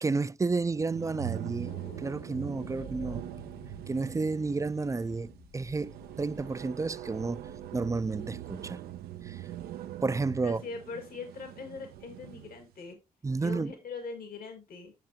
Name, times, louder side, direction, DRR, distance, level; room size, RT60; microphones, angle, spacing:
voice 1, 0.0-3.3 3.9-8.8 9.2-9.4 10.0-10.6 13.2-13.7, right 3 dB, 20° right, 0.4 m, -31 dB
sound 1, 0.6-12.6, right 13 dB, 90° right, 0.5 m, -42 dB
sound 2, 1.6-7.7, left 4 dB, 55° left, 1.2 m, -53 dB
voice 2, 2.5-3.4 10.4-13.0 13.4-14.9, left 4 dB, 75° left, 1.8 m, -42 dB
7.6 x 6.5 x 2.7 m
supercardioid pair, 50°, 16 cm